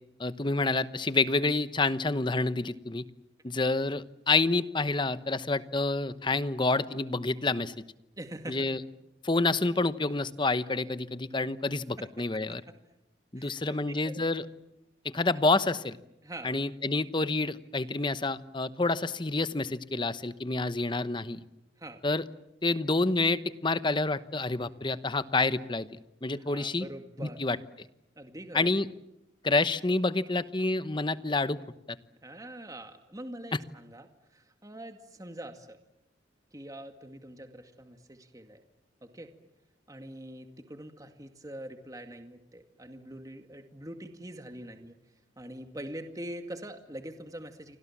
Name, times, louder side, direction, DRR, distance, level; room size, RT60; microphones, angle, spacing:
voice 1, 0.2-3.0 3.4-7.7 8.5-8.8 9.2-12.6 13.3-14.4 15.0-16.0 16.4-21.4 22.0-22.2 22.6-25.9 26.2-26.9 27.2-27.6 28.5-28.9 29.4-31.6 31.9-32.0, left 3 dB, 25° left, 13 dB, 1.0 m, -28 dB
voice 2, 8.2-8.7 13.4-14.3 16.2-16.6 21.8-22.0 26.3-27.4 28.2-28.7 32.2-35.8 36.5-38.6 39.0-39.3 39.9-44.9 45.4-47.8, right 1 dB, 20° right, 6 dB, 2.1 m, -44 dB
29.5 x 25.0 x 7.4 m, 0.88 s
head